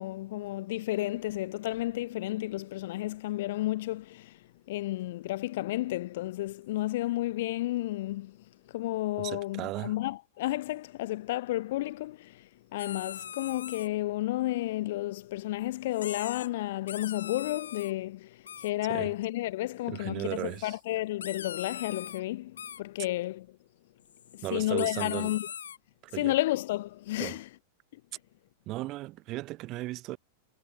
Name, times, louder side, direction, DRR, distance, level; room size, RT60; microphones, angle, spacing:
voice 1, 0.0-4.4 4.7-8.4 8.7-23.6 24.3-25.5 26.2-27.5 27.9-28.0, left 16 dB, 65° left, 0.9 m, -32 dB
voice 2, 9.2-10.0 18.9-19.1 19.9-20.8 24.4-25.3 26.0-26.3 27.2-27.4 28.7-30.2, right 18 dB, 45° right, 4.2 m, -36 dB
sound 1, 12.8-13.9 15.9-16.5 16.7-17.9 18.5-18.7 20.3-20.8 21.2-22.2 22.6-22.8 24.1-25.8, left 8 dB, 85° left, 4.4 m, -41 dB
hypercardioid pair, 115°, 0 cm